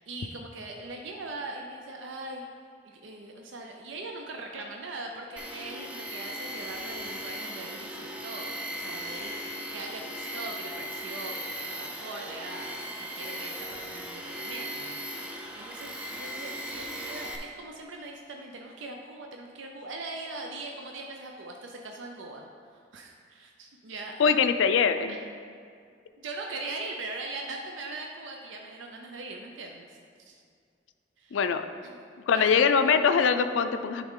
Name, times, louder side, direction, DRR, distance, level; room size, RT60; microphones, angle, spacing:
voice 1, 0.0-2.5 2.8-24.4 25.1-25.2 26.2-30.0 30.3-30.4 31.2-31.4 32.3-32.5, right 2 dB, 85° right, 1 dB, 0.5 m, -41 dB
Tools, 5.4-17.4, equal, 5° right, 0.5 m, -38 dB
voice 2, 24.2-25.2 31.3-31.6 32.3-34.1, left 6 dB, 85° left, 9 dB, 0.4 m, -23 dB
10.0 x 3.7 x 3.7 m, 2.2 s
head